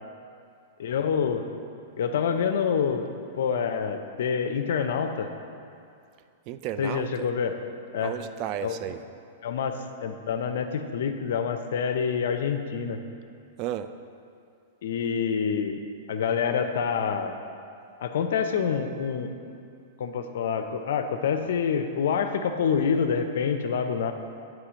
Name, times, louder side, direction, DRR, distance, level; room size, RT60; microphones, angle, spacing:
voice 1, 0.8-1.4 2.0-3.1 3.4-5.3 6.8-7.6 7.9-8.1 8.6-8.7 9.4-13.0 14.8-15.8 16.1-17.3 18.0-19.3 20.0-24.1, left 6 dB, 75° left, 7 dB, 0.5 m, -27 dB
voice 2, 6.5-7.3 8.0-9.0 13.6-13.9, right 11 dB, 40° right, 11 dB, 0.3 m, -33 dB
8.2 x 3.2 x 6.2 m, 2.4 s
hypercardioid pair, 140°, 0 cm